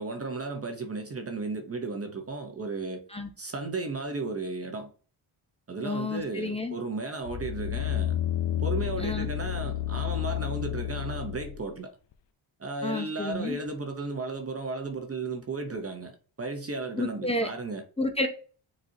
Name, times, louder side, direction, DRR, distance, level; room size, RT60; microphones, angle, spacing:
voice 1, 0.0-3.1 3.4-4.9 5.7-8.2 8.6-11.9 12.6-17.8, right 3 dB, 30° right, 0.7 m, -34 dB
voice 2, 5.8-6.8 9.0-9.3 12.8-13.6 17.0-17.5 18.0-18.3, left 2 dB, 10° left, 0.8 m, -30 dB
sound 1, 7.3-11.6 12.1-12.2, left 13 dB, 60° left, 0.6 m, -31 dB
9.0 x 4.1 x 2.7 m
wide cardioid pair, 145°, 48 cm